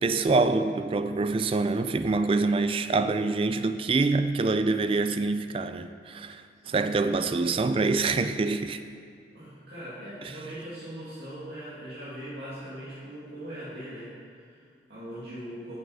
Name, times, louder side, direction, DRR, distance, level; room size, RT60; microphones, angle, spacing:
voice 1, 0.0-8.8, right 3 dB, 30° right, 0.3 m, -25 dB
voice 2, 2.1-2.5 6.6-6.8 9.3-15.8, right 1 dB, 65° right, 2.2 m, -41 dB
7.0 x 6.5 x 6.1 m
head